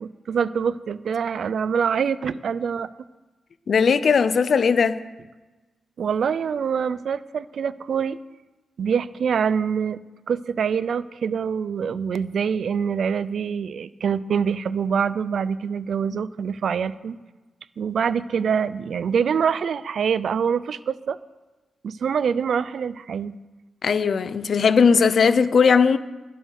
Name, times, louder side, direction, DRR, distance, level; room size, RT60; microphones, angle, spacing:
voice 1, 0.0-2.9 6.0-8.2 8.8-10.0 10.3-17.2 17.8-21.2 21.8-23.3, right 7 dB, 65° right, 0.5 m, -25 dB
voice 2, 3.7-5.0 23.8-26.0, left 5 dB, 55° left, 0.7 m, -18 dB
20.5 x 7.7 x 6.6 m
wide cardioid pair, 125°, 0 cm